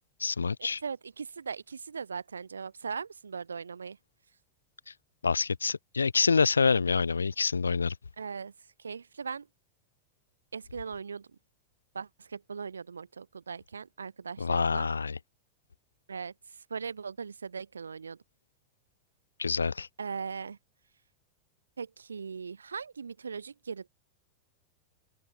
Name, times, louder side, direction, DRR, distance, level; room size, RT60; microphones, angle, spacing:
voice 1, 0.0-0.8 5.2-7.9 14.4-15.2 19.4-19.9, left 5 dB, 75° left, 1.8 m, -27 dB
voice 2, 0.6-4.0 8.2-8.5 8.8-9.5 10.5-11.3 11.9-14.9 16.1-18.2 20.0-20.6 21.8-23.9, right 5 dB, 75° right, 5.7 m, -39 dB
figure-of-eight pair, 90°, 0 cm